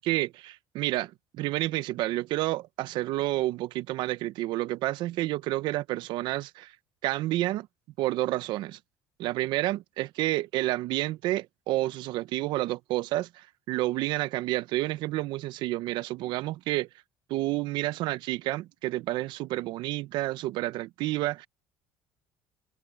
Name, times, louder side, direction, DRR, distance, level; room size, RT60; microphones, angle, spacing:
voice 1, 0.0-6.7 7.0-7.7 8.0-8.8 9.2-16.9 17.3-21.5, right 17 dB, 65° right, 0.7 m, -30 dB
cardioid pair, 140°, 8 cm